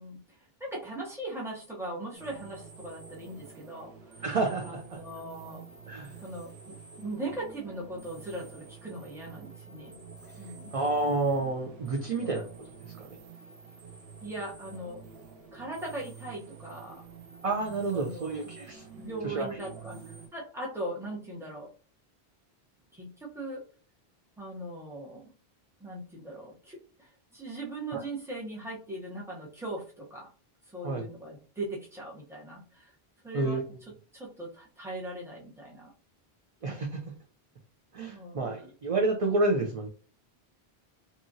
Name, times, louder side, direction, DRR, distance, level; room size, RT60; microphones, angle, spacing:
voice 1, 0.0-4.2 4.6-5.6 6.2-10.0 10.4-10.7 12.2-12.5 14.2-15.0 15.5-17.0 17.9-18.5 19.0-20.0 20.3-21.7 22.9-23.6 24.4-25.3 25.8-30.3 30.7-32.9 33.2-33.6 34.1-35.9 38.1-38.6, right 1 dB, 5° right, -3 dB, 0.7 m, -40 dB
sound 1, 2.1-20.3, right 6 dB, 85° right, 1.0 m, -49 dB
voice 2, 4.2-5.0 5.9-6.1 10.7-12.7 13.0-13.2 17.4-18.8 19.2-19.6 27.9-28.0 30.8-31.0 33.3-33.6 36.6-37.0 37.9-39.9, right 2 dB, 50° right, 1 dB, 0.4 m, -29 dB
2.9 x 2.4 x 2.6 m, 0.39 s
omnidirectional pair, 1.0 m